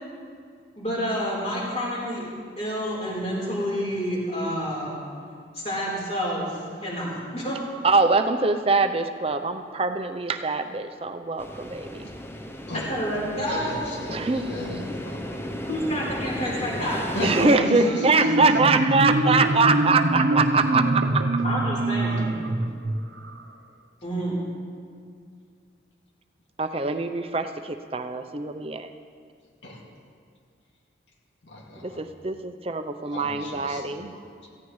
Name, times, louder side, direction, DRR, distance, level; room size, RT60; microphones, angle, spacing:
voice 1, 0.8-2.3 2.6-5.0 5.5-7.6 12.9-13.8 14.4-14.7 15.7-18.3 21.4-22.3 24.0-24.3, equal, 35° left, -5 dB, 3.9 m, -29 dB
voice 2, 7.8-12.1 14.1-14.5 17.2-21.2 26.6-28.9 31.8-34.1, right 3 dB, 30° right, 8 dB, 0.6 m, -23 dB
sound 1, 11.4-17.5, left 1 dB, 15° left, 0.7 m, -35 dB
voice 3, 13.4-15.4 17.1-18.6 19.3-19.4 29.6-29.8 31.4-32.0 33.1-34.5, left 1 dB, 80° left, -2 dB, 2.2 m, -34 dB
Marimba xylophone, 17.9-23.4, right 1 dB, 80° right, 0.8 m, -24 dB
17.0 x 15.0 x 3.2 m, 2.2 s
head